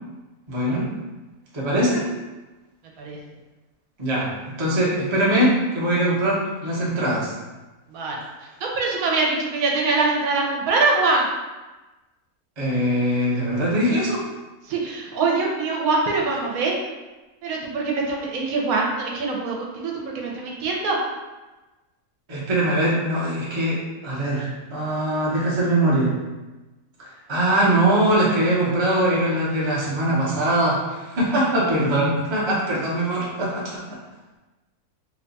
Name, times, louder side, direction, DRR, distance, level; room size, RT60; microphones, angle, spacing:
voice 1, 0.5-0.9 1.5-2.0 4.0-4.3 4.6-7.3 12.6-14.2 22.3-26.1 27.0-33.8, right 1 dB, 25° right, -6 dB, 0.6 m, -22 dB
voice 2, 8.6-11.3 14.7-16.7 17.4-21.0, right 3 dB, 80° right, -1 dB, 1.1 m, -23 dB
3.1 x 2.2 x 3.9 m, 1.1 s
omnidirectional pair, 1.5 m